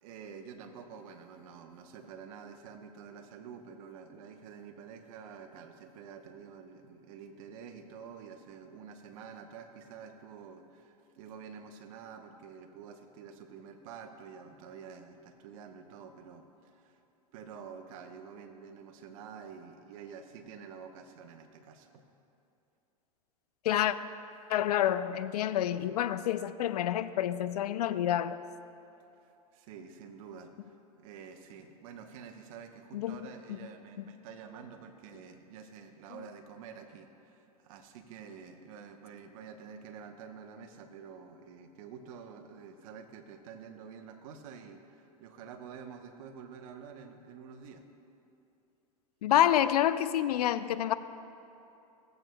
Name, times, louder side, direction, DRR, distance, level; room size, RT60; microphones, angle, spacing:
voice 1, 0.0-17.0 17.3-22.0 29.2-47.8, right 6 dB, 60° right, 5 dB, 1.0 m, -48 dB
voice 2, 23.6-24.0 24.5-28.4 32.9-33.6 34.0-34.1 49.2-50.9, left 11 dB, 80° left, 13 dB, 0.4 m, -28 dB
18.0 x 7.9 x 2.3 m, 2.8 s
hypercardioid pair, 110°, 20 cm